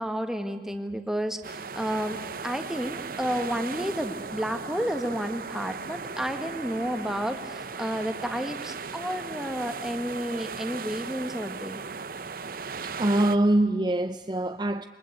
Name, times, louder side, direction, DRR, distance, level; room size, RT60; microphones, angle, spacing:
voice 1, 0.0-11.8, equal, 5° right, 6 dB, 1.8 m, -31 dB
sound 1, 1.4-13.4, right 5 dB, 55° right, 0.9 m, -37 dB
voice 2, 12.8-14.8, right 1 dB, 25° right, 8 dB, 0.7 m, -24 dB
28.5 x 23.0 x 8.3 m, 1.5 s
head